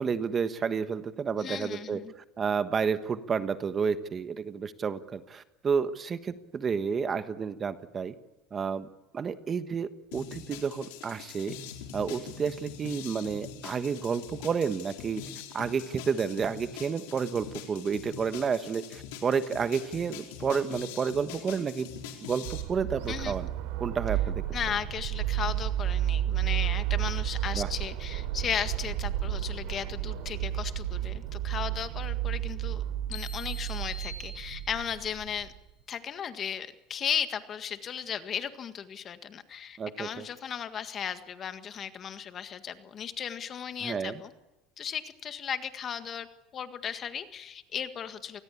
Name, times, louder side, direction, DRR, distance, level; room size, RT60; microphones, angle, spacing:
voice 1, 0.0-2.0 2.4-8.1 8.5-8.9 9.1-11.5 11.9-15.2 15.5-21.9 22.2-23.5 23.8-24.4 27.5-27.7 39.8-40.3 43.8-44.2, right 6 dB, 25° right, 11 dB, 1.3 m, -30 dB
voice 2, 1.4-2.1 23.1-23.3 24.5-32.8 33.1-35.5 35.9-44.3 44.8-46.3 46.5-48.4, left 8 dB, 35° left, 10 dB, 1.8 m, -36 dB
sound 1, 10.1-22.6, left 8 dB, 85° left, 4.6 m, -44 dB
sound 2, 22.4-35.6, right 13 dB, 75° right, 3.7 m, -32 dB
sound 3, 33.1-35.1, left 4 dB, 60° left, 3.4 m, -45 dB
28.5 x 20.0 x 8.5 m, 0.93 s
supercardioid pair, 130°, 0 cm